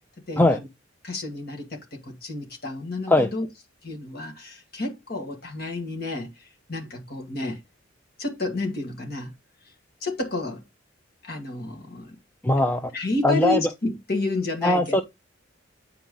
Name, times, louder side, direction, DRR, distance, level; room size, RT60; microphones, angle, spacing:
voice 1, 0.3-0.7 1.0-3.5 3.8-7.6 8.2-9.3 10.0-10.6 11.2-12.2 12.9-15.0, left 3 dB, 50° left, 2.1 m, -31 dB
voice 2, 12.4-12.9 13.2-13.6 14.6-15.0, left 1 dB, 10° left, 0.5 m, -20 dB
8.7 x 4.6 x 3.8 m
head